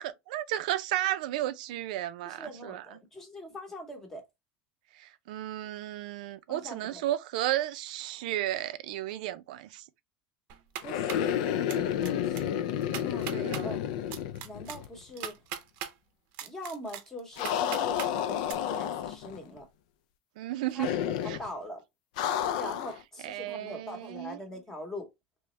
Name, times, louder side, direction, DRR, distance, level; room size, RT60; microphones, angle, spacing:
voice 1, 0.0-2.8 4.9-9.8 13.3-13.8 20.4-20.9 21.3-21.4 23.2-24.4, right 14 dB, 90° right, 0.5 m, -33 dB
voice 2, 2.3-4.2 6.5-7.0 10.8-12.5 13.0-13.3 13.6-13.8 14.3-15.4 16.4-19.6 20.7-21.1 21.4-21.8 22.5-25.1, left 1 dB, 10° left, 0.9 m, -42 dB
sound 1, 10.5-11.3 11.7-12.1 12.4-12.5 12.8-13.6 14.1-15.9 16.3-18.1 18.5-18.6, right 9 dB, 45° right, 0.6 m, -39 dB
sound 2, 10.8-15.0 15.2-15.3 17.4-19.4 20.8-21.5 22.2-23.0, left 10 dB, 70° left, 0.4 m, -31 dB
3.4 x 3.0 x 3.0 m
cardioid pair, 175°, 4 cm